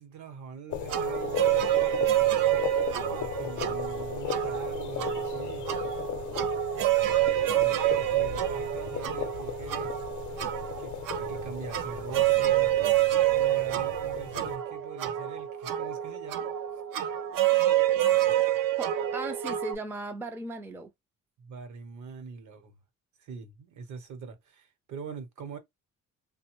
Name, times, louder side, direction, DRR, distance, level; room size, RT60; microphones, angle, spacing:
voice 1, 0.0-2.4 2.9-5.7 7.5-9.9 10.8-12.7 13.3-16.5 21.4-22.7 23.2-25.6, right 5 dB, 65° right, 0.9 m, -43 dB
sound 1, 0.7-14.6, left 10 dB, 65° left, 0.6 m, -37 dB
sound 2, 0.9-19.7, right 13 dB, 80° right, 0.5 m, -27 dB
voice 2, 18.8-20.9, right 2 dB, 5° right, 0.4 m, -37 dB
3.2 x 2.1 x 3.0 m
cardioid pair, 150°, 32 cm